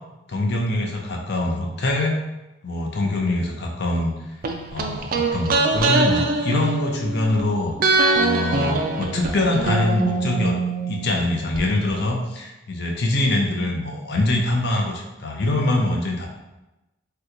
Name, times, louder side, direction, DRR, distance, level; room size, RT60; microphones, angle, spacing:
voice 1, 0.3-2.2 2.6-4.1 4.7-7.8 8.1-10.6 10.9-16.3, left 2 dB, 60° left, 0 dB, 0.5 m, -23 dB
sound 1, 4.4-7.4 7.8-11.6 11.9-12.0, right 3 dB, 50° right, 0.3 m, -23 dB
2.8 x 2.2 x 3.7 m, 0.99 s
head